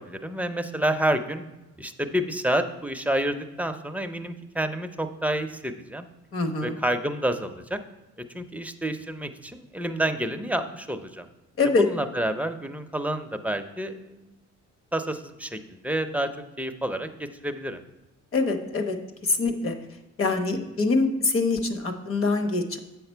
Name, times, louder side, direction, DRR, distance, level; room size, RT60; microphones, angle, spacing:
voice 1, 0.0-1.4 1.8-6.1 6.6-7.8 8.3-11.3 11.8-14.2 14.9-16.3 16.6-17.8, right 1 dB, 5° right, 7 dB, 0.5 m, -29 dB
voice 2, 6.3-6.8 11.6-11.9 18.3-19.0 19.2-19.8 20.2-22.8, left 3 dB, 45° left, 7 dB, 1.0 m, -24 dB
7.7 x 5.8 x 4.4 m, 1.0 s
cardioid pair, 105°, 29 cm